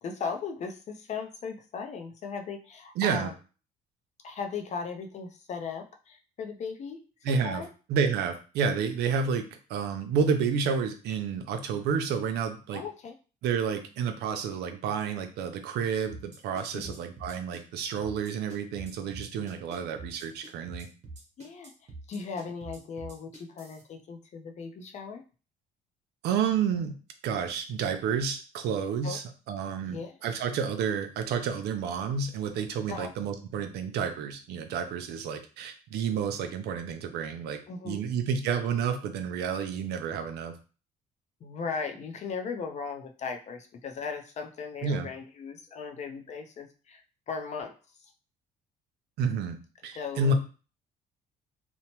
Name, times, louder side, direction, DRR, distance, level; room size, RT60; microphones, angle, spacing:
voice 1, 0.0-3.3 4.2-7.7 12.7-13.1 16.7-17.0 21.4-21.7 22.1-25.2 29.0-29.2 29.8-30.3 32.9-33.1 37.7-38.0 41.4-47.7 48.0-48.1 50.0-50.3, left 5 dB, 45° left, 5 dB, 0.5 m, -37 dB
voice 2, 3.0-3.3 7.2-7.6 7.9-9.4 9.7-12.8 13.4-20.9 26.2-26.9 27.2-29.2 29.5-37.6 37.8-40.5 44.8-45.1 49.2-49.6 49.8-50.3, right 6 dB, 80° right, 7 dB, 0.5 m, -30 dB
sound 1, 16.1-23.8, right 2 dB, 40° right, 0.9 m, -45 dB
2.9 x 2.0 x 2.9 m, 0.35 s
cardioid pair, 110°, 17 cm